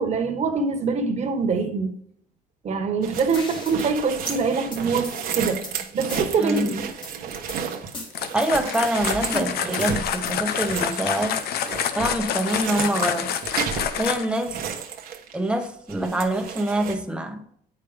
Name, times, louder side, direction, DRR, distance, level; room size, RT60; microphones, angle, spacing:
voice 1, 0.0-1.9 2.6-5.6 5.9-7.2, right 4 dB, 40° right, 1.4 m, -24 dB
sound 1, 3.0-15.6 15.9-16.9, right 7 dB, 60° right, 1.1 m, -33 dB
sound 2, 3.3-3.9 4.3-5.7 6.1-6.6 7.0-7.6 7.9-8.9 9.3-10.5, left 2 dB, 30° left, 1.9 m, -37 dB
voice 2, 6.4-6.8 8.3-11.4 11.9-13.3 14.0-14.6 15.3-17.4, right 1 dB, 5° right, 1.0 m, -25 dB
sound 3, 8.1-14.4, left 9 dB, 70° left, 0.7 m, -28 dB
8.4 x 5.2 x 3.5 m
cardioid pair, 110°, 17 cm